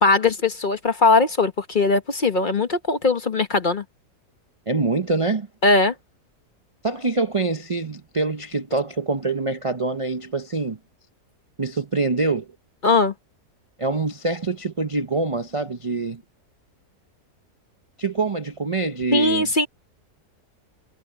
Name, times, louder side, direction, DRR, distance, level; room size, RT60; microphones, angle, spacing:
voice 1, 0.0-3.8 5.6-5.9 12.8-13.1 19.1-19.7, left 3 dB, 35° left, 1.0 m, -19 dB
voice 2, 4.7-5.5 6.8-10.8 11.6-12.5 13.8-16.2 18.0-19.5, right 3 dB, 35° right, 0.5 m, -25 dB
omnidirectional pair, 1.7 m